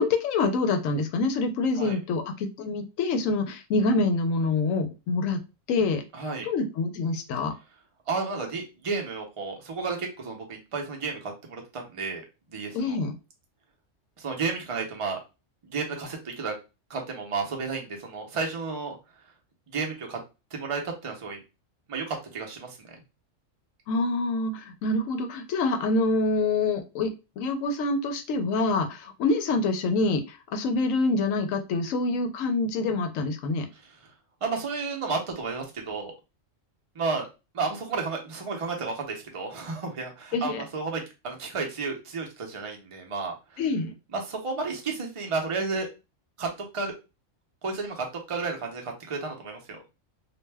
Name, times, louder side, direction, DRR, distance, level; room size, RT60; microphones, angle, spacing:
voice 1, 0.0-5.4 5.7-6.0 6.4-7.5 12.7-13.1 23.9-33.7 40.3-40.6 43.6-43.9, left 3 dB, 90° left, 6 dB, 1.0 m, -26 dB
voice 2, 6.1-6.5 8.1-12.2 12.5-13.0 14.2-15.2 15.6-16.5 16.9-19.0 19.7-20.2 20.5-21.4 21.9-22.9 33.8-34.0 34.4-36.1 36.9-37.3 37.5-43.6 44.1-45.9 46.4-46.9 47.6-49.8, right 4 dB, 35° right, 2 dB, 0.6 m, -32 dB
2.5 x 2.1 x 3.3 m, 0.28 s
omnidirectional pair, 1.3 m